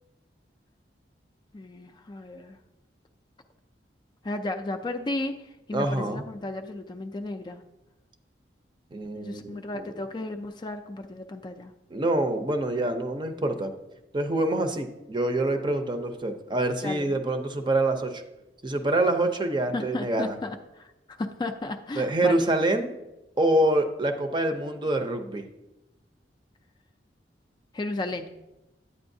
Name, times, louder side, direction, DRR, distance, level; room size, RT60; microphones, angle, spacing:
voice 1, 1.5-2.6 4.2-7.6 9.2-11.7 16.8-17.2 19.7-22.5 27.7-28.3, left 2 dB, 25° left, 6 dB, 0.3 m, -34 dB
voice 2, 5.7-6.2 8.9-9.9 11.9-13.7 14.1-18.2 18.6-20.3 22.0-22.9 23.4-25.4, right 1 dB, 25° right, 6 dB, 0.6 m, -26 dB
9.8 x 8.5 x 2.6 m, 0.98 s
head